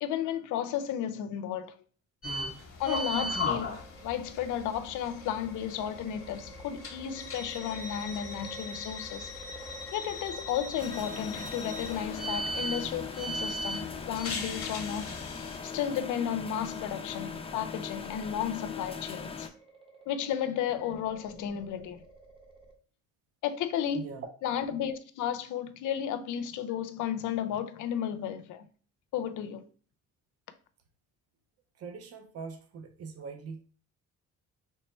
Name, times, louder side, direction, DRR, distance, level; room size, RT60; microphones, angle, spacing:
voice 1, 0.0-1.7 2.8-9.3 9.9-15.2 15.6-19.5 20.1-22.0 23.4-24.1 24.4-28.6 29.1-29.7, left 9 dB, 80° left, 0.5 m, -33 dB
sound 1, 2.2-15.6, left 2 dB, 45° left, 0.9 m, -38 dB
sound 2, 2.9-22.8, right 3 dB, 20° right, 1.0 m, -53 dB
sound 3, 10.8-19.5, left 5 dB, 20° left, 0.4 m, -40 dB
voice 2, 23.9-24.3 31.8-33.6, right 5 dB, 55° right, 0.6 m, -42 dB
3.2 x 2.2 x 4.2 m
cardioid pair, 90°, 30 cm